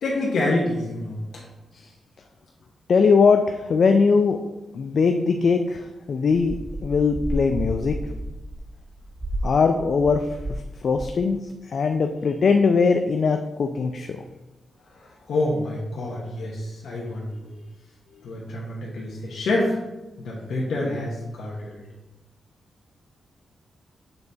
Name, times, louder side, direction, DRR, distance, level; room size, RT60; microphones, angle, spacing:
voice 1, 0.0-1.4 14.9-17.5 18.2-19.8 20.2-21.8, left 2 dB, 80° left, -5 dB, 1.1 m, -27 dB
voice 2, 2.9-4.4 4.7-6.6 6.8-8.0 9.4-10.3 10.8-14.2, left 5 dB, 60° left, 5 dB, 0.4 m, -20 dB
sound 1, 6.4-10.7 10.9-11.3, right 1 dB, 20° right, 0.4 m, -31 dB
6.9 x 4.1 x 3.4 m, 1.1 s
cardioid pair, 100°, 0 cm